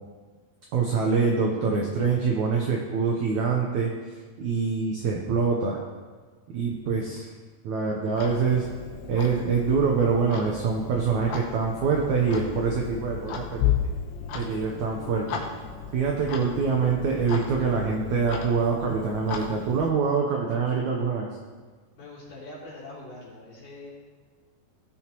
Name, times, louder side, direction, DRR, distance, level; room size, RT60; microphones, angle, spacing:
voice 1, 0.7-5.8 6.5-7.3 7.6-8.7 9.1-13.8 14.3-15.4 15.9-21.3, right 5 dB, 75° right, -1 dB, 1.7 m, -25 dB
Clock, 8.1-19.9, left 8 dB, 80° left, 2.8 m, -34 dB
voice 2, 22.0-23.9, left 2 dB, 55° left, -8 dB, 4.2 m, -43 dB
16.5 x 6.4 x 3.0 m, 1.5 s
omnidirectional pair, 4.4 m